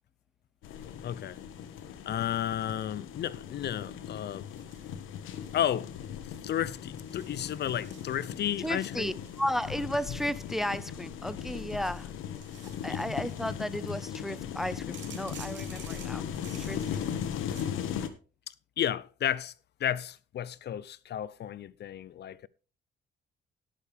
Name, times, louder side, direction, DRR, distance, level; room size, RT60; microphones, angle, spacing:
sound 1, 0.6-18.1, left 8 dB, 90° left, 1.3 m, -38 dB
voice 1, 0.8-1.4 2.1-4.5 5.5-5.9 6.4-9.1 12.9-13.0 18.5-19.5 19.8-22.5, left 10 dB, 60° left, 0.6 m, -33 dB
sound 2, 4.5-5.6 5.9-6.3 7.0-8.6 9.2-11.0 11.4-13.6 14.9-17.7, right 8 dB, 65° right, 2.8 m, -53 dB
voice 2, 8.6-12.1 12.8-17.0, equal, ahead, 0.5 m, -34 dB
17.5 x 6.7 x 3.5 m
cardioid pair, 90°, 20 cm